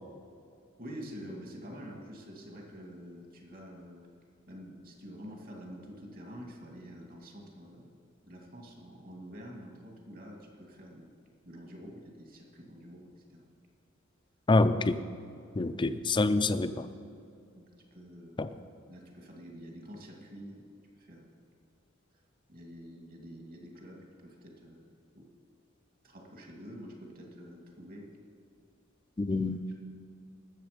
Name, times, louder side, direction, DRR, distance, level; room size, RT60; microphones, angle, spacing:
voice 1, 0.8-4.1 4.5-7.9 8.2-11.1 11.5-13.5 17.5-18.4 18.9-20.6 21.0-21.3 22.5-25.3 26.0-28.1, equal, 45° right, 1 dB, 2.2 m, -47 dB
voice 2, 14.5-15.0 15.5-16.9 18.4-18.5 29.2-29.6, left 2 dB, 25° left, 11 dB, 0.5 m, -26 dB
20.0 x 7.2 x 5.1 m, 2.5 s
head